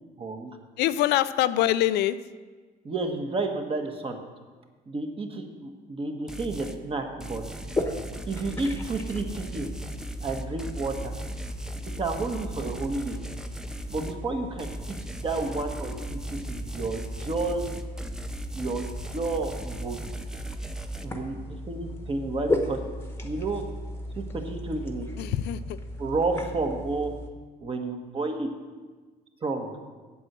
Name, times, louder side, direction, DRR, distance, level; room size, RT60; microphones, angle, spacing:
voice 1, 0.2-0.5 2.8-4.2 4.9-7.4 8.3-9.7 10.2-11.1 12.0-13.2 13.9-14.7 15.2-17.6 18.5-20.0 21.0-22.8 23.2-23.6 24.2-25.1 26.0-27.1 27.6-28.5 29.4-29.7, right 3 dB, 35° right, 4 dB, 1.3 m, -31 dB
voice 2, 0.8-2.2 25.2-25.8, left 13 dB, 85° left, 14 dB, 0.4 m, -24 dB
sound 1, 6.3-6.8 7.2-14.2 14.6-21.1, right 2 dB, 5° right, 0.6 m, -39 dB
sound 2, 7.6-27.3, left 1 dB, 15° left, 1.1 m, -36 dB
8.6 x 7.9 x 6.1 m, 1.4 s
cardioid pair, 110°, 17 cm